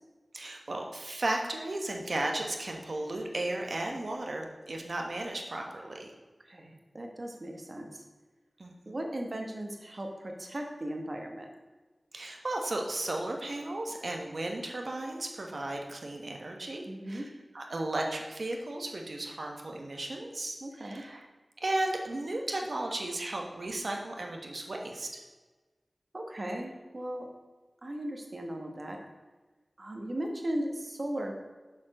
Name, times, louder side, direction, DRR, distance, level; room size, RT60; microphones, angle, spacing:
voice 1, 0.3-6.1 8.6-9.0 12.1-17.3 17.5-21.2 21.6-25.2, right 2 dB, 65° right, 2 dB, 1.2 m, -35 dB
voice 2, 6.4-8.0 8.8-11.5 16.9-17.3 20.6-21.0 26.1-27.3 27.8-29.0 29.8-31.4, right 1 dB, 45° right, 2 dB, 1.3 m, -37 dB
7.1 x 4.4 x 6.0 m, 1.3 s
wide cardioid pair, 65°, 0 cm